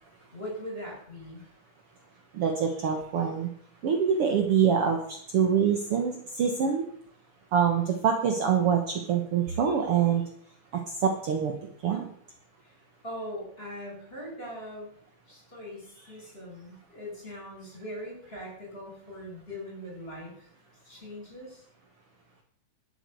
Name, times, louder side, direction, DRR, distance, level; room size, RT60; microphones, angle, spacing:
voice 1, 0.3-1.4 12.6-12.8 13.0-14.9 15.3-20.5 20.8-21.6, equal, 20° left, 0 dB, 6.3 m, -41 dB
voice 2, 2.3-3.5 3.8-6.9 7.5-10.2 10.9-11.5 11.8-12.1, right 7 dB, 55° right, 3 dB, 2.1 m, -25 dB
12.5 x 8.5 x 7.8 m, 0.64 s
omnidirectional pair, 3.3 m